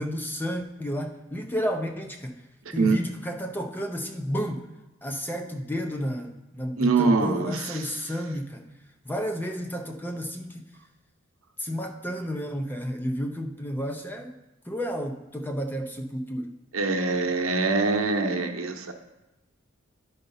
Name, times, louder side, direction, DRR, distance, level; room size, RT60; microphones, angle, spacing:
voice 1, 0.0-2.4 2.7-4.7 5.0-8.7 9.1-10.7 11.6-14.4 14.7-16.5, equal, 10° left, 4 dB, 0.5 m, -31 dB
voice 2, 6.8-7.6 16.7-18.9, right 3 dB, 80° right, 5 dB, 0.8 m, -24 dB
10.5 x 4.0 x 5.5 m, 1.0 s
head